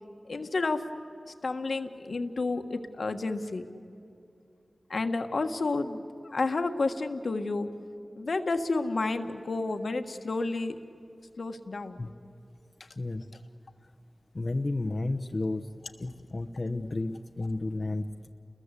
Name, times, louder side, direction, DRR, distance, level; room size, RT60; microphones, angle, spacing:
voice 1, 0.3-0.9 1.3-3.7 4.9-7.7 8.2-10.8 11.4-12.0, left 3 dB, 80° left, 6 dB, 1.5 m, -30 dB
voice 2, 13.0-13.3 14.3-15.7 16.0-18.3, left 2 dB, 50° left, 6 dB, 0.9 m, -32 dB
30.0 x 22.0 x 8.3 m, 2.6 s
wide cardioid pair, 60°, 0 cm